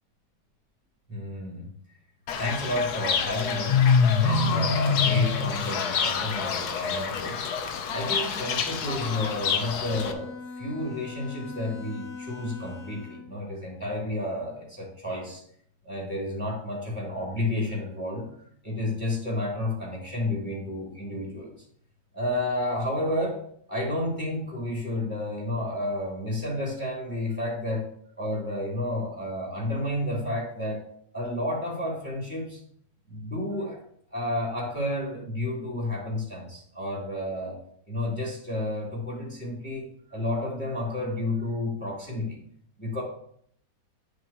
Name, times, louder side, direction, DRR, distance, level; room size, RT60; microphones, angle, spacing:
voice 1, 1.1-1.7 2.4-3.7 4.2-7.4 7.9-15.4 15.8-18.3 18.6-21.5 22.1-23.4 23.7-27.8 28.2-30.8 31.1-32.6 33.1-33.8 34.1-37.6 37.9-42.4 42.8-43.0, left 1 dB, 5° left, -4 dB, 3.1 m, -31 dB
Fowl / Bird, 2.3-10.1, left 6 dB, 70° left, 1.3 m, -26 dB
Bowed string instrument, 9.8-13.4, left 4 dB, 40° left, 2.9 m, -41 dB
11.0 x 6.6 x 3.0 m, 0.65 s
omnidirectional pair, 1.8 m